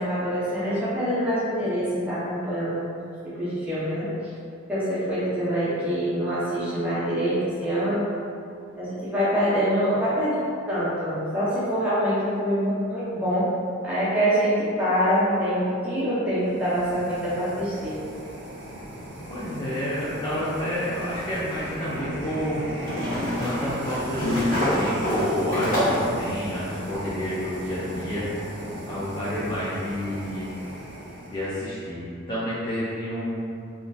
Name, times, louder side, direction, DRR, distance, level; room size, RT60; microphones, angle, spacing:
voice 1, 0.0-2.8 3.4-4.1 4.7-8.0 8.7-10.4 10.7-13.4 13.8-17.9, equal, 5° right, -12 dB, 0.8 m, -25 dB
sound 1, 16.4-31.8, right 1 dB, 55° right, 0.6 m, -37 dB
voice 2, 19.3-22.6 23.4-24.4 24.7-28.3 28.9-30.5 31.3-33.5, equal, 25° left, -10 dB, 0.4 m, -29 dB
sound 2, 20.8-20.9 22.8-26.2, equal, 40° left, 1.3 m, -26 dB
3.5 x 2.5 x 2.4 m, 2.5 s
head